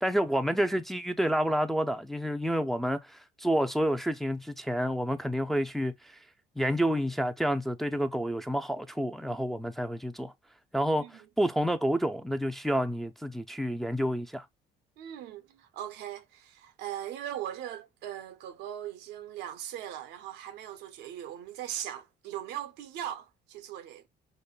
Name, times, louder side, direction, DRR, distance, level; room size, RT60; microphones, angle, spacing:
voice 1, 0.0-5.9 6.6-10.3 10.7-14.5, equal, ahead, 0.4 m, -29 dB
voice 2, 15.0-24.1, right 11 dB, 85° right, 0.7 m, -39 dB
5.2 x 2.1 x 2.3 m
cardioid pair, 110°, 17 cm